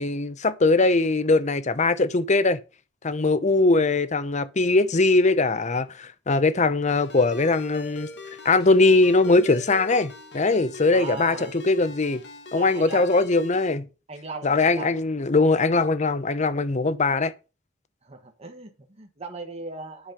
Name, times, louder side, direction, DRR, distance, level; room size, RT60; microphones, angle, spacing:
voice 1, 0.0-2.6 3.0-8.1 8.4-12.2 12.5-13.9 14.4-17.3, left 3 dB, 35° left, 0.7 m, -21 dB
Ringtone, 6.9-13.8, left 3 dB, 60° left, 1.4 m, -41 dB
voice 2, 10.9-11.5 12.5-13.1 14.1-15.0 18.0-20.1, right 3 dB, 30° right, 1.4 m, -38 dB
10.5 x 5.4 x 5.4 m
head